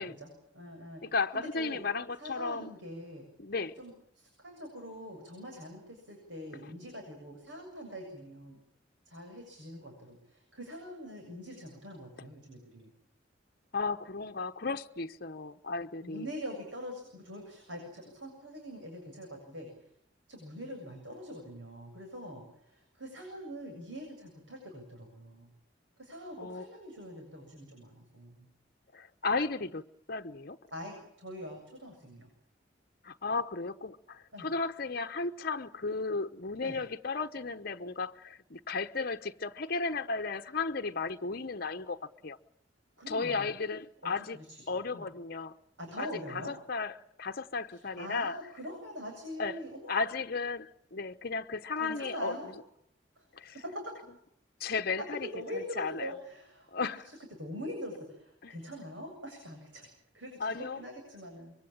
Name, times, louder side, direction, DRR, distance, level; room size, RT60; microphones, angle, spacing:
voice 1, 0.0-1.8 2.2-3.2 3.8-8.6 9.1-12.9 16.0-19.7 20.3-25.5 26.0-28.4 30.7-32.3 34.3-34.5 36.6-36.8 43.0-43.5 44.0-44.6 44.9-45.0 45.8-46.5 47.7-50.0 51.8-52.5 53.2-53.3 53.5-53.9 55.0-55.1 55.3-59.9 60.1-61.5, equal, 80° right, 7.6 m, -44 dB
voice 2, 1.0-2.7 3.4-3.8 13.7-16.3 26.4-26.6 28.9-30.6 33.0-42.4 43.1-44.4 44.7-45.5 46.0-46.9 47.2-48.4 49.4-49.6 49.9-52.4 53.3-53.5 54.6-55.3 55.5-56.1 56.7-57.1 58.4-58.5 60.4-60.8, left 4 dB, 55° left, 1.0 m, -34 dB
25.0 x 23.0 x 8.9 m
head